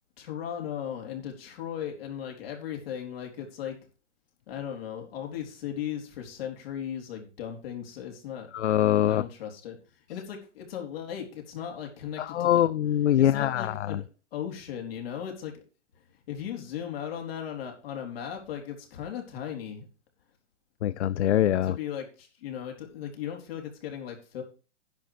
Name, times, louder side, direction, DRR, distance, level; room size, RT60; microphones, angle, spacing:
voice 1, 0.2-3.8 4.5-8.5 9.1-9.8 10.1-12.6 13.2-14.0 14.3-15.5 16.3-19.9 21.6-24.4, left 9 dB, 55° left, 2 dB, 4.0 m, -37 dB
voice 2, 8.5-9.2 12.2-14.0 20.8-21.8, left 11 dB, 75° left, 18 dB, 0.5 m, -23 dB
10.5 x 7.3 x 4.7 m, 0.35 s
hypercardioid pair, 120°, 35 cm